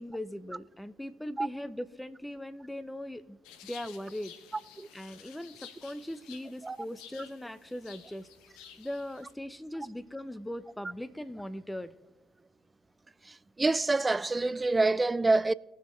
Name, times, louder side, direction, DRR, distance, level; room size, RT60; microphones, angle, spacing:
voice 1, 0.0-3.4 3.6-4.4 4.9-8.3 8.8-11.9, left 1 dB, 10° left, 0.8 m, -40 dB
sound 1, 3.4-9.3, left 9 dB, 75° left, 0.7 m, -52 dB
voice 2, 13.6-15.5, right 3 dB, 25° right, 0.4 m, -26 dB
19.0 x 6.4 x 3.2 m
hypercardioid pair, 45°, 0 cm